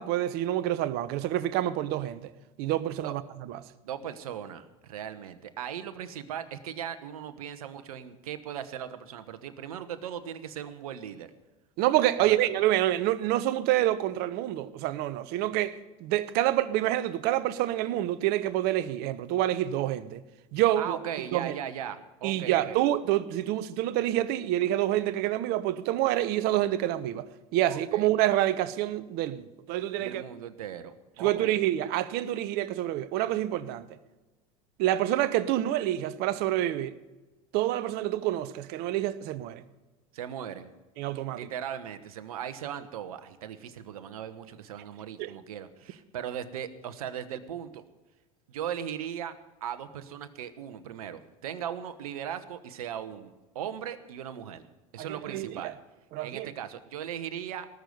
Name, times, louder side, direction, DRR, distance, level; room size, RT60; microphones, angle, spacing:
voice 1, 0.0-2.3 2.6-3.2 11.8-20.2 20.5-21.0 21.3-21.6 22.2-27.3 27.5-30.2 31.2-33.8 34.8-37.0 37.5-39.6 41.0-41.4 45.2-45.3 55.0-55.7 56.1-56.5, right 13 dB, 60° right, 1.0 m, -27 dB
voice 2, 3.8-11.3 12.2-12.5 20.8-22.8 27.7-28.1 30.0-31.6 40.1-40.7 41.3-47.8 48.5-49.3 49.6-54.6 54.9-55.7 56.2-57.7, right 9 dB, 85° right, 1.2 m, -38 dB
19.0 x 6.7 x 9.4 m
hypercardioid pair, 90°, 18 cm